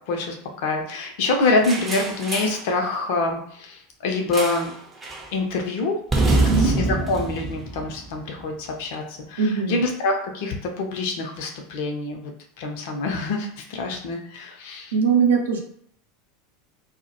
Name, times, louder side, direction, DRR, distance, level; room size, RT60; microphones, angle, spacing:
voice 1, 0.1-4.7 5.3-12.3 12.6-14.9, left 3 dB, 55° left, 2 dB, 0.5 m, -26 dB
sound 1, 1.6-2.7 4.3-4.8 5.0-5.3 6.1-8.4, right 2 dB, 20° right, 0.5 m, -24 dB
voice 2, 6.5-6.8 9.4-9.8 14.9-15.6, right 6 dB, 70° right, 0 dB, 0.5 m, -21 dB
2.1 x 2.1 x 2.8 m, 0.67 s
figure-of-eight pair, 80°, 0 cm